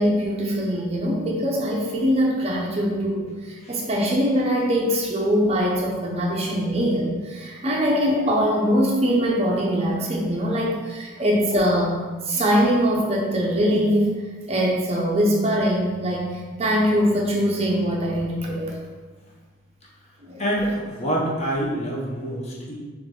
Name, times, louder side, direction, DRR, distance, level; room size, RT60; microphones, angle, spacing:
voice 1, 0.0-12.0 12.3-14.1 14.5-18.8 20.2-20.4, equal, 30° right, -2 dB, 0.5 m, -22 dB
voice 2, 20.4-22.8, right 1 dB, 35° left, -4 dB, 0.8 m, -26 dB
4.0 x 3.1 x 3.6 m, 1.4 s
head